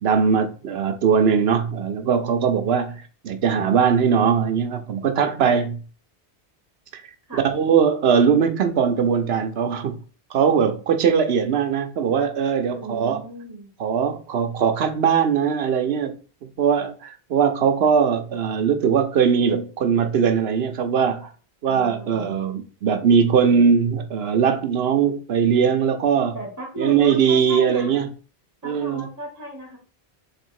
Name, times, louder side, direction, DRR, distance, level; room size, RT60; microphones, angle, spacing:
voice 1, 0.0-5.8 6.9-7.0 7.4-9.9 10.3-13.2 13.8-16.1 16.4-21.3 21.6-26.4 26.8-28.1 28.6-29.0, right 7 dB, 70° right, 0.9 m, -20 dB
voice 2, 12.7-13.7 21.6-22.3 26.3-28.0 28.6-29.8, right 1 dB, 15° right, 1.4 m, -35 dB
3.5 x 3.3 x 4.6 m
omnidirectional pair, 1.1 m